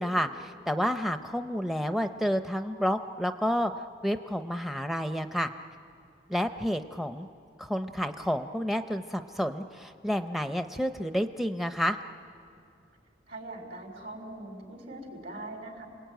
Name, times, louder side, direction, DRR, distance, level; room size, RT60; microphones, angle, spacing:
voice 1, 0.0-3.7 4.0-5.5 6.3-7.3 7.6-12.0, equal, ahead, 7 dB, 0.6 m, -30 dB
voice 2, 13.3-15.9, right 2 dB, 65° right, 3 dB, 4.6 m, -41 dB
29.5 x 21.5 x 9.2 m, 2.4 s
head